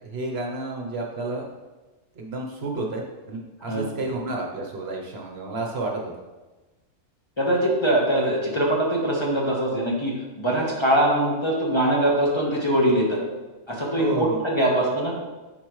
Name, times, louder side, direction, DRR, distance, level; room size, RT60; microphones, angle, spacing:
voice 1, 0.0-1.4 2.1-6.1 14.0-14.4, right 2 dB, 60° right, 1 dB, 1.1 m, -30 dB
voice 2, 7.4-13.2 13.7-15.1, right 1 dB, 25° left, -4 dB, 1.2 m, -22 dB
9.6 x 4.3 x 3.1 m, 1.2 s
omnidirectional pair, 1.3 m